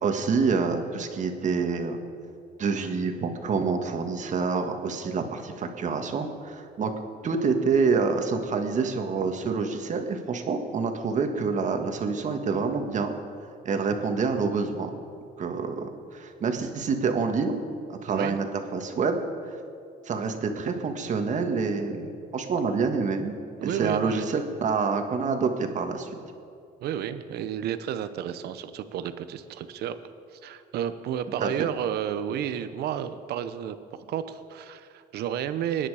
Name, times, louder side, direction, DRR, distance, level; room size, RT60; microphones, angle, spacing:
voice 1, 0.0-2.0 2.6-6.9 7.2-13.1 13.7-14.9 15.4-17.6 17.9-19.2 19.5-19.6 20.0-23.3 23.6-26.1 31.4-31.5, right 5 dB, 45° right, 5 dB, 1.8 m, -27 dB
voice 2, 18.1-18.4 23.6-24.2 26.8-30.0 30.3-33.8 34.1-35.9, right 9 dB, 75° right, 11 dB, 0.9 m, -31 dB
24.0 x 10.0 x 5.0 m, 2.5 s
cardioid pair, 110°, 17 cm